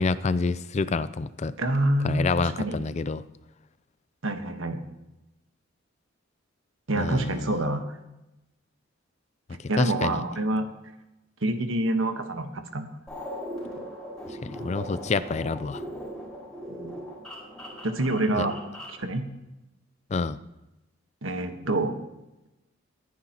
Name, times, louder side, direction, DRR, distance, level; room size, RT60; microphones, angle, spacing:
voice 1, 0.0-1.5 2.0-3.2 7.0-7.6 9.8-10.2 14.4-15.8 18.4-18.5 20.1-20.4, left 4 dB, 35° left, 15 dB, 0.4 m, -27 dB
voice 2, 1.6-2.8 4.2-4.8 6.9-8.0 9.5-10.7 11.4-12.9 16.7-16.9 17.8-18.6 18.9-19.2 21.2-22.0, right 1 dB, 75° right, 7 dB, 1.3 m, -27 dB
sound 1, 13.1-19.0, equal, 5° left, 4.5 m, -39 dB
21.0 x 9.7 x 2.9 m, 0.95 s
head